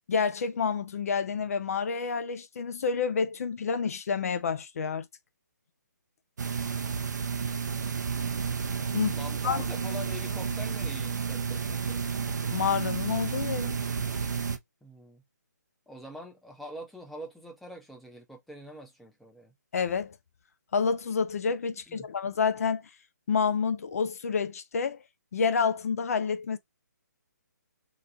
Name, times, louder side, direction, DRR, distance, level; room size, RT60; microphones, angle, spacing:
voice 1, 0.1-5.1 8.9-9.2 9.4-9.6 12.5-13.8 19.7-20.2 20.7-22.8 23.3-25.0 25.3-26.6, left 5 dB, 50° left, 0.4 m, -28 dB
sound 1, 6.4-14.6, right 6 dB, 70° right, 0.6 m, -31 dB
voice 2, 9.1-12.0 14.8-15.2 15.9-19.5 21.9-22.1, left 1 dB, ahead, 0.6 m, -44 dB
2.9 x 2.2 x 3.8 m
figure-of-eight pair, 145°, 10 cm